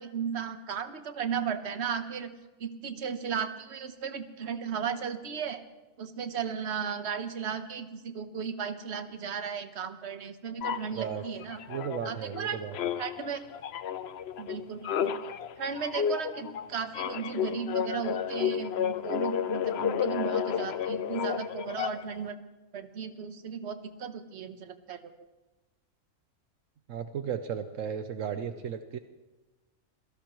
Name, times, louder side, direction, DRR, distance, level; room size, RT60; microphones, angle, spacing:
voice 1, 0.0-2.3 2.6-5.6 6.0-11.6 12.0-12.6 13.0-13.4 14.4-15.1 15.6-22.4 22.7-25.0, right 7 dB, 55° right, 9 dB, 1.3 m, -35 dB
sound 1, 10.6-12.4 12.7-22.2, left 8 dB, 60° left, 0.8 m, -32 dB
voice 2, 11.7-12.8 26.9-29.0, right 8 dB, 75° right, 8 dB, 1.1 m, -35 dB
27.0 x 17.0 x 3.1 m, 1.2 s
omnidirectional pair, 1.4 m